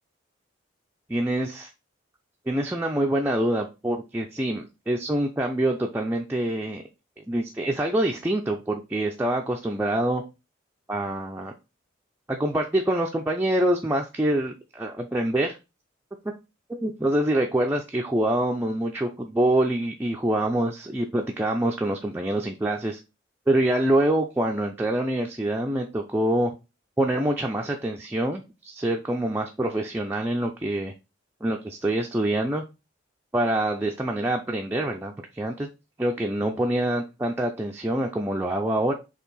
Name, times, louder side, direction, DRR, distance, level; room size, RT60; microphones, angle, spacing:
voice 1, 1.1-1.6 2.5-6.8 7.3-10.2 10.9-11.5 12.3-15.6 16.7-23.0 23.5-26.5 27.0-30.9 31.4-32.6 33.3-35.7 36.0-38.9, right 1 dB, 10° right, 1 dB, 0.4 m, -25 dB
4.5 x 3.0 x 4.0 m, 0.27 s
head